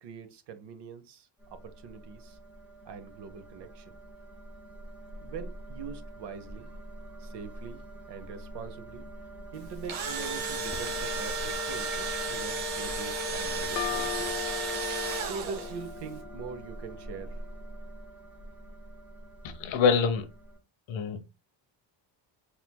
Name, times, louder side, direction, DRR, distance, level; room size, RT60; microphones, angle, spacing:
voice 1, 0.0-1.3 1.6-2.4 2.8-3.9 5.2-6.7 7.1-7.8 8.1-9.0 9.5-14.3 15.3-17.4, right 6 dB, 60° right, 0.9 m, -43 dB
sound 1, 1.4-20.6, right 1 dB, 5° right, 0.8 m, -44 dB
Engine / Drill, 9.6-15.9, right 2 dB, 85° right, 1.4 m, -33 dB
sound 2, 13.8-17.3, left 12 dB, 40° left, 0.4 m, -39 dB
voice 2, 19.4-20.3 20.9-21.2, left 6 dB, 75° left, 1.1 m, -25 dB
4.2 x 4.1 x 2.2 m
cardioid pair, 145°, 46 cm